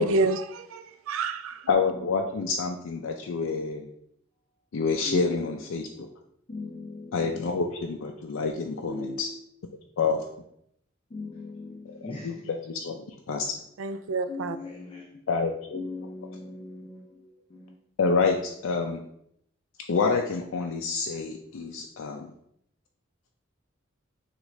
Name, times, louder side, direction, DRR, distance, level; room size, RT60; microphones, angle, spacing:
voice 1, 0.0-1.7 13.8-14.6, right 3 dB, 85° right, 11 dB, 0.4 m, -28 dB
voice 2, 1.7-3.9 4.7-6.1 7.1-9.3 10.0-10.2 11.9-13.5 15.3-15.8 18.0-19.0 19.9-22.3, left 4 dB, 85° left, 2 dB, 0.4 m, -28 dB
voice 3, 6.5-7.4 8.8-9.4 11.1-12.3 14.3-15.0 15.7-17.1 17.5-17.7, left 3 dB, 25° left, 0 dB, 0.4 m, -39 dB
6.0 x 2.5 x 3.1 m, 0.72 s
head